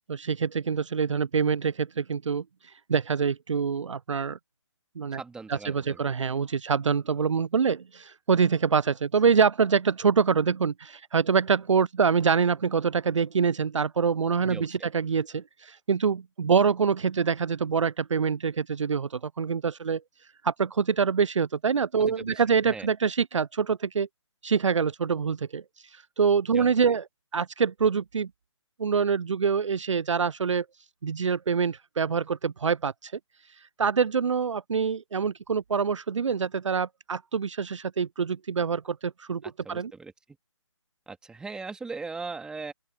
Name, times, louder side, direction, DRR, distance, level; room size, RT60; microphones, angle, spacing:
voice 1, 0.1-2.4 2.9-4.4 5.0-5.2 5.5-20.0 20.4-24.1 24.4-25.6 26.2-27.0 27.3-28.3 28.8-30.7 31.0-33.1 33.8-39.4 39.7-39.9, right 6 dB, 75° right, 0.4 m, -25 dB
voice 2, 5.1-6.0 14.4-14.9 22.0-22.9 26.5-27.0 39.6-40.1 41.1-42.7, right 4 dB, 5° right, 2.8 m, -39 dB
open air
figure-of-eight pair, 140°, 16 cm